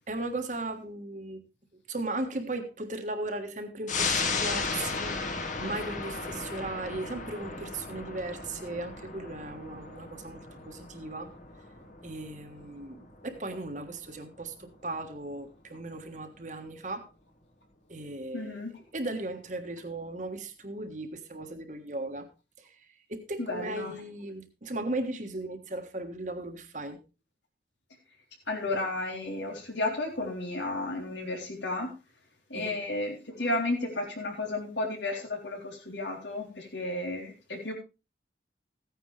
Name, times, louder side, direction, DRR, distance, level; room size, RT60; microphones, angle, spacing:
voice 1, 0.1-1.4 1.7-11.3 12.0-17.1 17.9-18.6 18.9-22.3 22.6-27.0 32.5-32.8, right 2 dB, 40° right, 6 dB, 1.5 m, -37 dB
sound 1, 3.9-14.8 15.2-15.3, left 4 dB, 45° left, 1.7 m, -35 dB
voice 2, 18.3-18.8 23.4-23.9 28.5-31.9 32.5-37.7, left 2 dB, 80° left, 1 dB, 3.6 m, -33 dB
15.5 x 9.5 x 3.3 m, 0.29 s
head